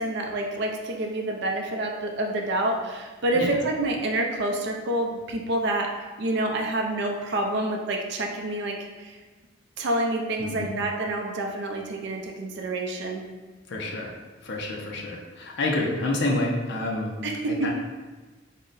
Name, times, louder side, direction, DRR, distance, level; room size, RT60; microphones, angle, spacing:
voice 1, 0.0-5.9 6.2-9.2 9.8-13.2 17.2-17.7, right 1 dB, 60° right, 2 dB, 0.5 m, -28 dB
voice 2, 10.4-10.8 13.7-14.2 14.4-17.1 17.5-17.7, left 2 dB, 60° left, -1 dB, 0.5 m, -28 dB
3.7 x 2.1 x 3.8 m, 1.3 s
head